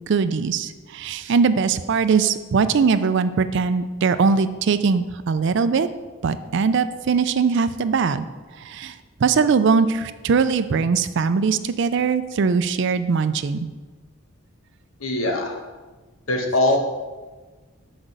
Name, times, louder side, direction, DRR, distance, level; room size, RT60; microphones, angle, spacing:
voice 1, 0.1-5.9 6.2-8.3 8.6-8.9 9.2-13.6, right 5 dB, 60° right, 12 dB, 0.4 m, -21 dB
voice 2, 15.0-15.5 16.3-16.8, left 1 dB, 85° left, 2 dB, 1.3 m, -21 dB
6.0 x 5.1 x 6.5 m, 1.3 s
head